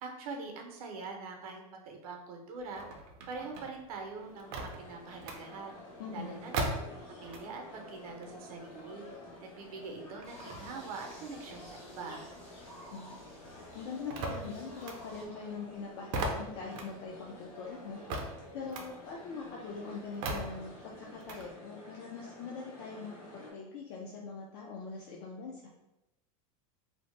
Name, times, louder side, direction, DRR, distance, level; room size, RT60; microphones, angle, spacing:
voice 1, 0.0-2.8 3.3-5.7 6.1-6.5 7.1-9.1 9.4-12.2, right 4 dB, 85° right, 2 dB, 0.7 m, -43 dB
sound 1, 2.6-7.7 8.0-12.9 13.2-21.4, right 2 dB, 45° right, 0.4 m, -40 dB
sound 2, 4.1-23.5, left 1 dB, 75° left, 1.1 m, -51 dB
voice 2, 6.0-6.5 12.9-13.2 13.7-18.0 18.5-25.7, left 4 dB, 50° left, -2 dB, 0.4 m, -43 dB
sound 3, 10.2-15.3, equal, 30° left, 0.8 m, -54 dB
2.7 x 2.0 x 3.1 m, 0.94 s
supercardioid pair, 175°, 18 cm